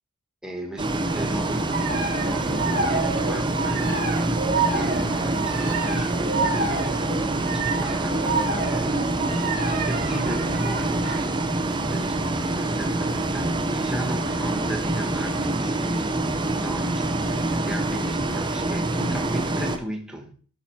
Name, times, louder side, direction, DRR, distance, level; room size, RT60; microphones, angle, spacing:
voice 1, 0.4-20.3, right 1 dB, 5° right, 1.2 m, -37 dB
Bus, 0.8-19.8, right 2 dB, 20° right, 0.7 m, -26 dB
sound 1, 1.7-11.3, right 3 dB, 40° right, 1.4 m, -29 dB
11.5 x 5.9 x 2.9 m
head